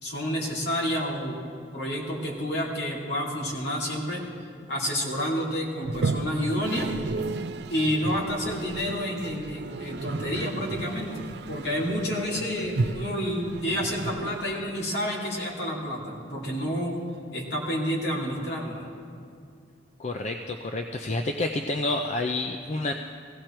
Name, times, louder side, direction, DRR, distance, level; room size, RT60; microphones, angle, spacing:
voice 1, 0.0-1.4 1.7-4.2 4.7-6.9 7.7-17.0 17.3-18.9, equal, 60° left, -3 dB, 2.7 m, -29 dB
Toilet flush, 5.8-14.9, right 3 dB, 60° right, 0.4 m, -33 dB
voice 2, 20.0-22.9, left 2 dB, 35° left, 5 dB, 0.5 m, -29 dB
16.5 x 16.0 x 4.5 m, 2.3 s
head